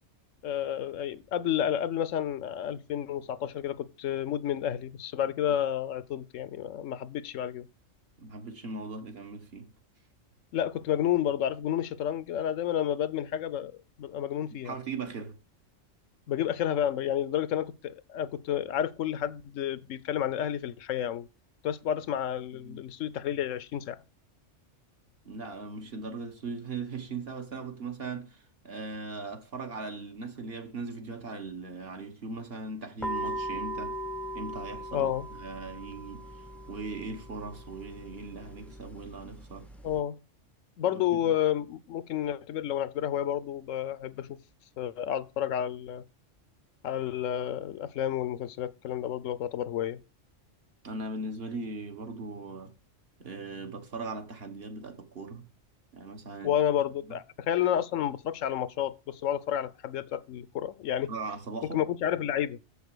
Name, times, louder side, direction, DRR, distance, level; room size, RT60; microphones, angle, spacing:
voice 1, 0.4-7.7 10.5-13.7 14.0-14.7 16.3-21.3 21.6-24.0 34.9-35.3 39.8-40.2 40.8-44.4 44.8-46.0 46.8-50.0 56.4-61.1 61.7-62.6, left 10 dB, 80° left, 1.0 m, -30 dB
voice 2, 8.2-9.7 14.5-15.4 22.6-22.9 25.2-34.0 34.3-35.1 35.4-39.7 40.9-41.3 50.8-52.7 53.2-55.5 55.9-56.6 57.1-57.2 61.1-61.8, right 3 dB, 50° right, 1.5 m, -39 dB
sound 1, 33.0-40.0, right 1 dB, ahead, 0.4 m, -39 dB
7.1 x 6.7 x 4.8 m
omnidirectional pair, 1.3 m